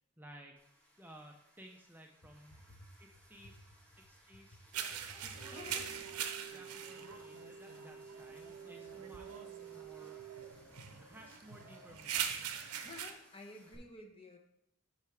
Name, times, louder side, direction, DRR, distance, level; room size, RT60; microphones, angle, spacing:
voice 1, 0.2-0.5 1.0-2.6 3.0-3.6 4.1-4.6 5.2-10.2 11.0-12.3, right 1 dB, 10° right, 2 dB, 0.5 m, -57 dB
sound 1, 0.6-13.7, equal, 5° left, 1.3 m, -64 dB
voice 2, 2.5-2.9 4.9-5.9 12.8-14.4, left 2 dB, 25° left, 4 dB, 0.8 m, -52 dB
sound 2, 4.7-13.1, right 8 dB, 85° right, 0.7 m, -43 dB
sound 3, 5.4-10.5, right 8 dB, 40° right, 0.9 m, -51 dB
8.2 x 5.6 x 3.3 m, 0.78 s
head